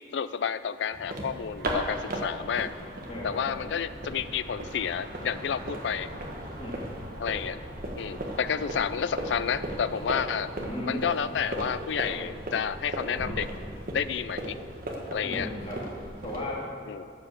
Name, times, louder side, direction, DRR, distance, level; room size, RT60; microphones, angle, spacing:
voice 1, 0.1-2.7 3.2-6.1 7.2-7.6 8.0-10.5 10.9-13.5 13.9-14.6 15.1-15.5 16.9-17.1, left 7 dB, 70° left, 14 dB, 0.4 m, -30 dB
sound 1, 0.9-16.5, right 1 dB, 50° right, 1.3 m, -37 dB
voice 2, 3.1-3.4 6.6-6.8 10.5-11.0 15.2-15.8 16.2-16.6, left 1 dB, 35° left, -6 dB, 2.6 m, -35 dB
12.0 x 5.3 x 7.1 m, 2.4 s
head